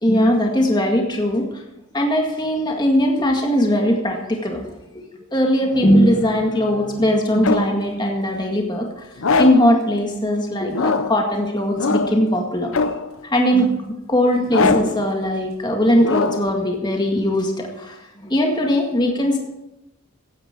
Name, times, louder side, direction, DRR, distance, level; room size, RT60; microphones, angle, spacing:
voice 1, 0.0-1.5 1.9-4.6 5.0-5.1 5.3-8.9 9.4-12.7 13.2-19.4, equal, 20° left, 1 dB, 1.9 m, -19 dB
sound 1, 5.7-7.8 9.2-9.8 10.7-11.3 11.8-12.3 12.7-13.2 14.5-15.1 16.0-16.6, left 4 dB, 70° left, 0.7 m, -23 dB
16.5 x 9.7 x 4.6 m, 0.91 s
head